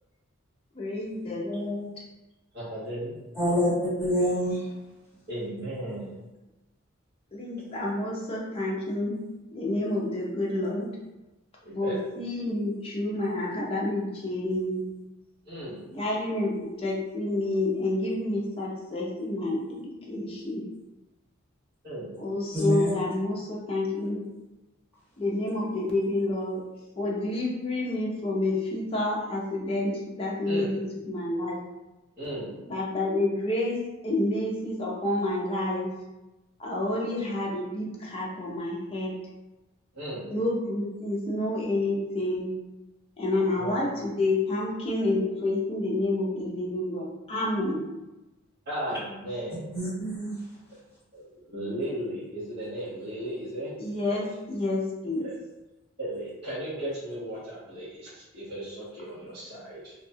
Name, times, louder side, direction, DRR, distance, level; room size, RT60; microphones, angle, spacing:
voice 1, 0.7-1.9 7.3-9.2 9.5-10.9 11.7-14.8 15.9-20.7 22.2-24.2 25.2-26.6 27.0-30.8 31.1-31.6 32.7-33.8 34.0-35.9 36.6-39.1 40.3-42.5 43.2-47.8 53.8-55.3, left 2 dB, 30° left, -4 dB, 0.5 m, -29 dB
voice 2, 2.5-3.1 3.4-3.8 5.3-6.2 11.6-12.0 15.4-15.9 21.8-22.2 30.4-30.7 32.2-32.6 39.9-40.3 43.6-43.8 48.6-49.7 50.7-50.8 51.1-53.7 54.0-54.2 55.2-55.3 56.0-59.9, right 1 dB, 55° right, -12 dB, 1.0 m, -36 dB
voice 3, 3.3-4.7 22.5-22.9 49.7-50.4, equal, 10° right, -10 dB, 1.1 m, -26 dB
2.7 x 2.2 x 2.7 m, 1.0 s
head